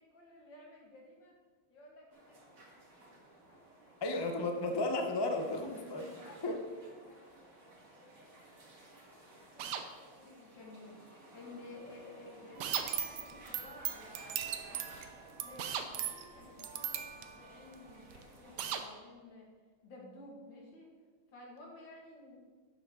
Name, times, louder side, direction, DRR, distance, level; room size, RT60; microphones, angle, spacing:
voice 1, 0.0-1.3 1.7-3.9 6.0-7.6 7.9-11.0 11.3-17.1 17.4-19.5 19.8-20.9 21.3-22.3, left 2 dB, 75° left, -2 dB, 2.6 m, -54 dB
sound 1, 2.1-18.7, right 1 dB, 45° right, 2.2 m, -57 dB
voice 2, 4.0-6.1 6.4-6.6, left 2 dB, 30° left, 4 dB, 0.4 m, -34 dB
sound 2, 9.6-9.9 12.6-12.9 15.6-15.9 18.6-18.9, right 8 dB, 70° right, 1.3 m, -37 dB
sound 3, 12.6-18.2 18.6-18.7, right 10 dB, 90° right, 1.5 m, -39 dB
11.5 x 7.4 x 3.8 m, 1.5 s
omnidirectional pair, 2.0 m